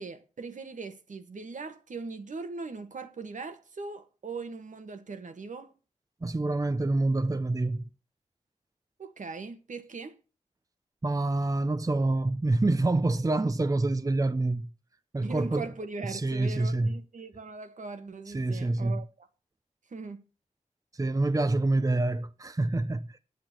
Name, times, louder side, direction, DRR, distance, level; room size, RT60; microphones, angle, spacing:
voice 1, 0.0-5.7 9.0-10.2 15.2-19.3 19.9-20.2, right 4 dB, 75° right, 1.6 m, -40 dB
voice 2, 6.2-7.9 11.0-14.7 15.1-15.7 16.1-16.9 18.3-19.0 20.9-23.2, right 2 dB, 25° right, 0.8 m, -27 dB
8.8 x 8.1 x 8.1 m
wide cardioid pair, 70°, 13 cm